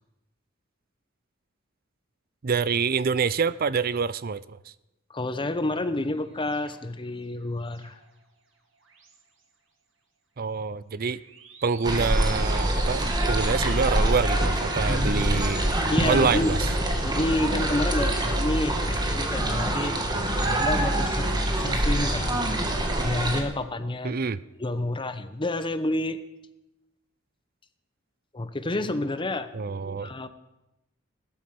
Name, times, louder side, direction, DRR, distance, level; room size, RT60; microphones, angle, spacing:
voice 1, 2.4-4.6 10.4-11.2 11.6-15.6 16.0-16.7 24.0-24.4 29.5-30.1, right 5 dB, 45° right, 0.5 m, -26 dB
voice 2, 5.1-8.0 14.9-15.4 15.9-16.6 16.9-20.0 20.5-24.2 24.6-26.2 28.3-29.5 30.0-30.3, left 1 dB, 25° left, 0.8 m, -29 dB
sound 1, 6.0-8.2 8.8-9.4 11.1-19.3, right 4 dB, 70° right, 2.6 m, -46 dB
sound 2, 11.8-23.4, right 1 dB, 20° right, 1.9 m, -25 dB
16.5 x 13.0 x 6.0 m
head